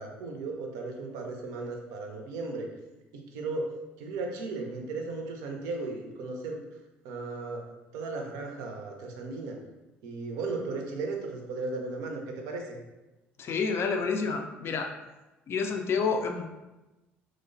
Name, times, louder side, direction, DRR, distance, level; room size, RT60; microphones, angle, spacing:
voice 1, 0.0-2.7 3.1-6.6 7.0-7.6 7.9-9.6 10.0-12.8, right 3 dB, 60° right, 2 dB, 0.5 m, -36 dB
voice 2, 13.4-14.9 15.5-16.5, left 5 dB, 40° left, 4 dB, 0.4 m, -29 dB
3.0 x 2.0 x 2.5 m, 1.0 s
figure-of-eight pair, 55°, 6 cm